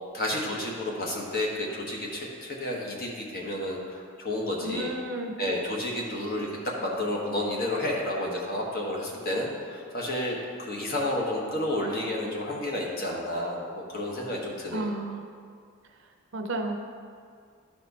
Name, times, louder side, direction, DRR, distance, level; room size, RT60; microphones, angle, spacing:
voice 1, 0.1-4.9 5.4-14.9, left 1 dB, 45° left, -2 dB, 1.3 m, -31 dB
voice 2, 4.6-5.3 14.7-15.2 16.3-16.8, right 1 dB, 60° right, 3 dB, 0.7 m, -32 dB
12.0 x 4.3 x 4.1 m, 2.2 s
head